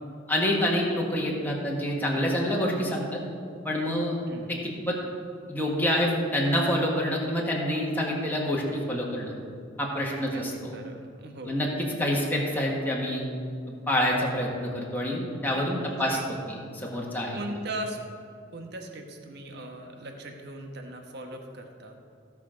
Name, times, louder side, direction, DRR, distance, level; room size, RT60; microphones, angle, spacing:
voice 1, 0.3-3.2 3.6-4.2 4.5-5.0 5.5-9.3 9.8-10.7 11.4-11.7 12.0-13.3 13.7-16.2 16.5-17.4, equal, 10° left, -3 dB, 1.6 m, -27 dB
voice 2, 10.3-11.6 15.7-16.2 17.3-18.0 18.5-22.0, right 1 dB, 60° right, 3 dB, 1.2 m, -39 dB
15.5 x 6.1 x 5.0 m, 2.3 s
head